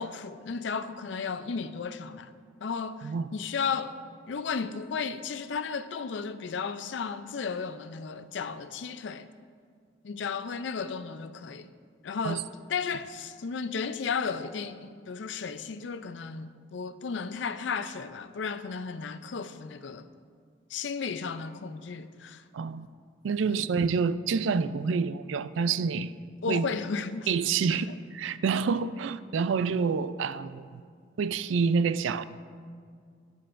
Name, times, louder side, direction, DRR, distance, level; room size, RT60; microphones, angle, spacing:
voice 1, 0.0-2.3 2.6-4.0 4.3-9.3 10.0-11.7 12.0-20.1 20.7-22.4 23.5-23.7 26.4-27.3 27.7-27.8, left 5 dB, 70° left, 0.5 m, -34 dB
voice 2, 22.5-22.9 23.2-26.1 26.5-26.7 27.3-30.8 31.2-32.2, right 5 dB, 85° right, 0.4 m, -28 dB
16.5 x 9.4 x 2.5 m
head